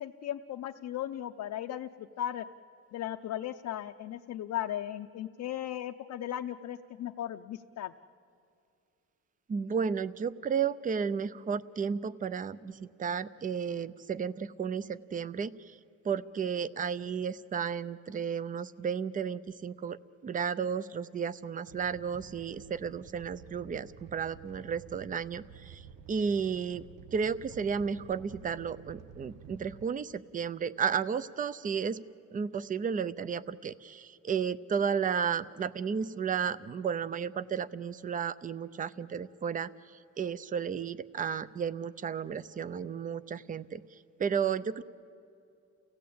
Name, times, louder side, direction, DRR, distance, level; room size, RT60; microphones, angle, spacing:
voice 1, 0.0-2.4 2.9-7.9, left 11 dB, 65° left, 4 dB, 0.6 m, -37 dB
voice 2, 9.5-15.8 16.0-26.8 27.1-32.0 32.3-39.7 40.2-43.8 44.2-44.8, right 6 dB, 25° right, 17 dB, 0.5 m, -33 dB
Animal, 21.7-29.8, right 8 dB, 85° right, 0.9 m, -51 dB
30.0 x 16.0 x 8.5 m, 2.5 s
cardioid pair, 150°, 31 cm